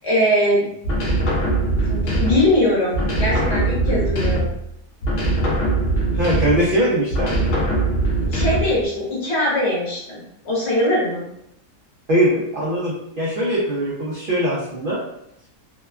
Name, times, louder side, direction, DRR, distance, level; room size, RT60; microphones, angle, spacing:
voice 1, 0.0-0.6 1.3-1.4 1.9-4.5 8.2-11.2, left 1 dB, 50° left, -6 dB, 1.0 m, -21 dB
sound 1, 0.8-2.6 2.9-4.7 5.0-6.7 7.1-8.8, right 2 dB, 75° left, 0.5 m, -21 dB
voice 2, 6.1-7.6 12.1-15.0, right 1 dB, 70° right, -6 dB, 0.5 m, -21 dB
2.8 x 2.2 x 2.3 m, 0.78 s
omnidirectional pair, 1.6 m